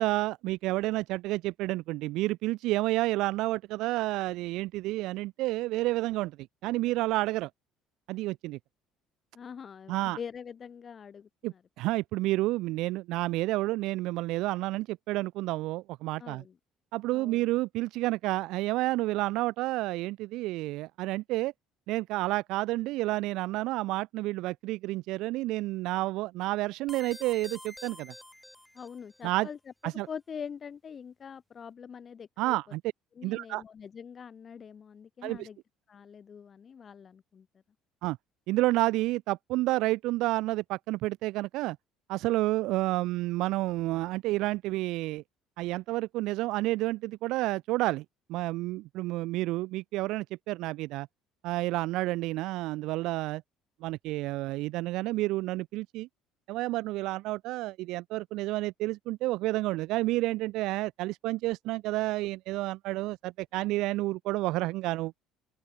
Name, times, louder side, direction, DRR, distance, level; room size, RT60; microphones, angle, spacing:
voice 1, 0.0-6.4 6.6-7.5 8.1-8.6 9.9-10.2 11.4-16.4 16.9-21.5 21.9-28.1 29.2-29.5 29.8-30.1 32.4-32.8 33.2-33.6 35.2-35.5 38.0-38.2 38.5-41.8 42.1-45.2 45.6-51.1 51.4-53.4 53.8-56.1 56.5-65.1, right 18 dB, 65° right, 1.4 m, -30 dB
voice 2, 9.3-11.6 16.2-16.6 17.1-17.5 28.7-29.6 29.8-32.6 33.2-35.6 35.9-37.5, left 7 dB, 40° left, 7.1 m, -44 dB
sound 1, 26.9-29.2, left 1 dB, 5° left, 7.8 m, -48 dB
open air
hypercardioid pair, 60°, 0 cm